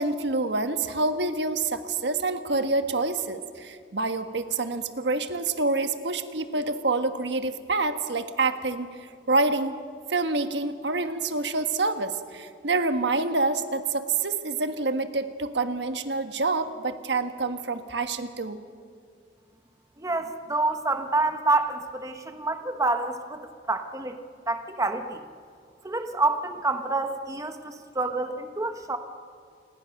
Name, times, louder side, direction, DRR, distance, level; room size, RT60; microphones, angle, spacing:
voice 1, 0.0-8.9 9.3-9.7 10.1-18.6, right 3 dB, 70° right, 8 dB, 1.3 m, -27 dB
voice 2, 20.0-23.4 23.7-24.2 24.5-25.2 25.8-29.0, right 2 dB, 20° right, 7 dB, 1.2 m, -27 dB
28.5 x 20.0 x 6.5 m, 2.2 s
head